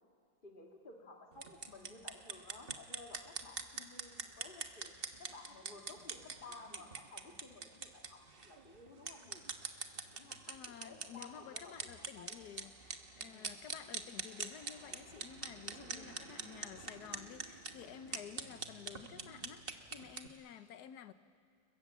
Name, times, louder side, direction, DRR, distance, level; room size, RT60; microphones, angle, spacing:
voice 1, 0.4-9.4 10.1-10.4 10.7-12.4 13.3-13.6 15.8-16.3, left 3 dB, 30° left, 2.1 m, -55 dB
sound 1, 1.3-20.3, right 4 dB, 35° right, 1.2 m, -45 dB
voice 2, 10.2-21.1, left 9 dB, 65° left, 1.4 m, -52 dB
30.0 x 22.5 x 7.5 m
omnidirectional pair, 1.9 m